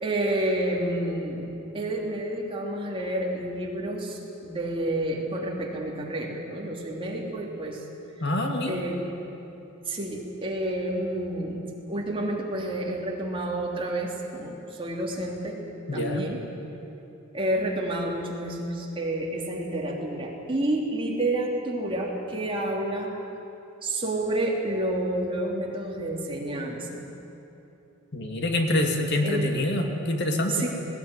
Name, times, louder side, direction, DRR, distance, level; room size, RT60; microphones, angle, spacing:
voice 1, 0.0-1.5 1.7-7.8 8.6-9.0 9.9-11.6 11.9-15.6 15.9-16.4 17.3-23.1 23.8-27.1 29.2-29.6 30.5-30.7, right 1 dB, 25° right, -2 dB, 3.2 m, -29 dB
voice 2, 8.2-8.8 15.9-16.2 28.1-30.7, left 1 dB, 55° left, 3 dB, 2.3 m, -26 dB
19.0 x 19.0 x 9.9 m, 2.9 s
head